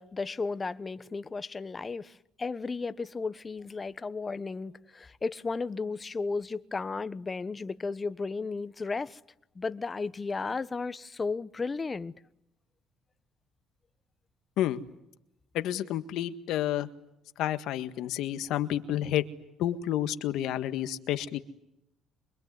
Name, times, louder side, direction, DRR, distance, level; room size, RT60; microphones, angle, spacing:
voice 1, 0.0-9.2 9.5-12.1, left 4 dB, 25° left, 1.2 m, -34 dB
voice 2, 15.5-16.9 17.4-19.3 19.6-21.4, left 12 dB, 75° left, 1.7 m, -30 dB
25.5 x 23.0 x 9.6 m
supercardioid pair, 85°, 0 cm